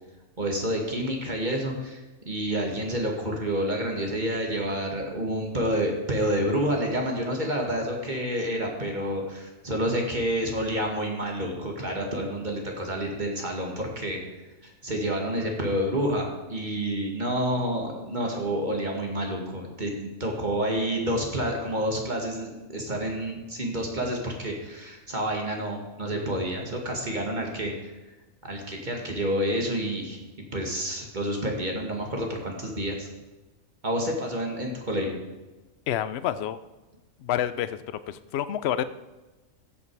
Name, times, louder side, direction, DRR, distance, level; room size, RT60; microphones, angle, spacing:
voice 1, 0.4-14.2 14.6-27.9 28.4-30.2 30.5-33.1 33.8-35.2, equal, 35° right, 1 dB, 2.1 m, -29 dB
voice 2, 35.9-36.6 37.2-38.8, left 11 dB, 60° left, 14 dB, 0.8 m, -28 dB
14.5 x 8.4 x 4.7 m, 1.1 s
omnidirectional pair, 1.4 m